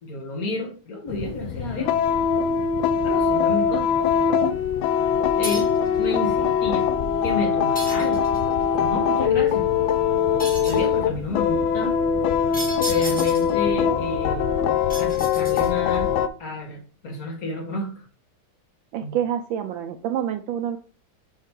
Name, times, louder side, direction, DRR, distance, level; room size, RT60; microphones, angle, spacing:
voice 1, 0.0-2.0 3.0-3.9 5.4-6.9 7.2-8.2 8.7-9.7 10.0-10.4 10.7-11.9 12.8-14.5 15.0-16.1 16.4-18.1 19.0-19.1, left 2 dB, 45° left, 1 dB, 1.9 m, -30 dB
sound 1, 1.1-16.3, left 7 dB, 75° left, 1.2 m, -22 dB
sound 2, 5.4-5.9 7.7-8.5 10.4-10.9 12.5-13.6 14.9-15.9, right 1 dB, 5° left, 1.7 m, -34 dB
voice 2, 18.9-20.8, right 10 dB, 75° right, 8 dB, 1.2 m, -27 dB
5.4 x 5.3 x 3.6 m, 0.39 s
omnidirectional pair, 2.3 m